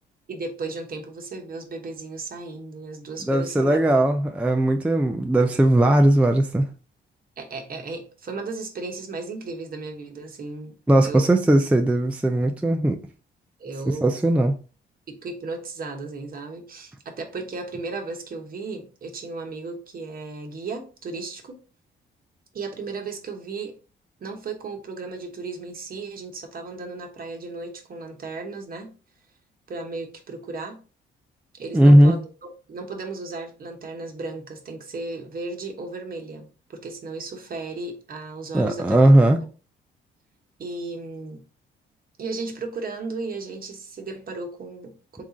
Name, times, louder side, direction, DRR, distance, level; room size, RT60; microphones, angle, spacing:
voice 1, 0.3-3.8 7.4-10.8 11.0-11.3 13.6-14.1 15.1-21.6 22.5-23.7 24.2-28.9 29.7-30.8 31.5-39.3 40.6-41.4 42.2-45.2, right 3 dB, 45° right, 1.0 m, -35 dB
voice 2, 3.3-6.6 10.9-13.0 14.0-14.6 31.7-32.1 38.5-39.4, right 1 dB, 5° right, 0.4 m, -18 dB
3.7 x 2.4 x 3.9 m
cardioid pair, 90°, 20 cm